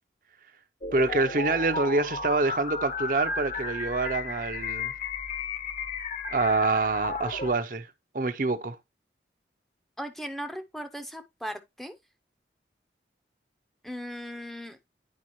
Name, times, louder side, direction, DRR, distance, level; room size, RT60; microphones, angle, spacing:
sound 1, 0.8-7.5, left 4 dB, 45° left, 0.8 m, -34 dB
voice 1, 0.9-4.9 6.3-7.9 8.1-8.8, right 3 dB, 50° right, 0.6 m, -26 dB
voice 2, 10.0-12.0 13.8-14.8, equal, ahead, 0.5 m, -37 dB
9.8 x 4.8 x 3.0 m
head